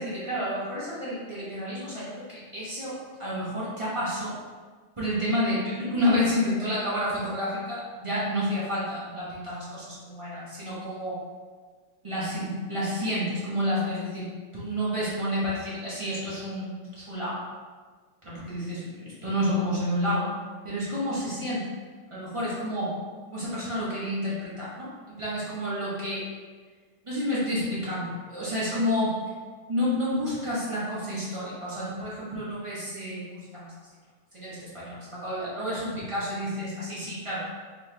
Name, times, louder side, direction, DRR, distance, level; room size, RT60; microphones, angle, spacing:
voice 1, 0.0-2.9 3.2-4.3 5.0-11.2 12.0-14.3 14.5-17.4 18.2-20.3 20.6-21.7 22.1-22.9 23.3-26.2 27.0-29.1 29.7-33.7 34.3-37.4, equal, 35° right, -9 dB, 0.4 m, -30 dB
4.3 x 3.1 x 3.2 m, 1.5 s
omnidirectional pair, 2.2 m